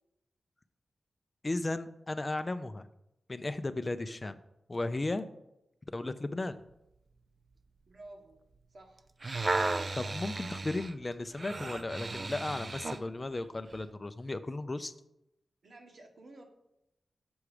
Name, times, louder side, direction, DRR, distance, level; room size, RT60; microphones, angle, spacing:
voice 1, 1.4-2.9 3.3-4.4 4.7-5.2 5.9-6.6 10.0-14.9, left 2 dB, 30° left, 11 dB, 0.4 m, -35 dB
voice 2, 7.9-8.4 8.7-9.1 15.6-16.5, right 2 dB, 65° right, 2 dB, 1.4 m, -52 dB
sound 1, 9.0-13.1 13.7-13.8, right 3 dB, 40° right, 0.4 m, -35 dB
7.0 x 4.8 x 4.9 m, 0.85 s
wide cardioid pair, 75°, 0 cm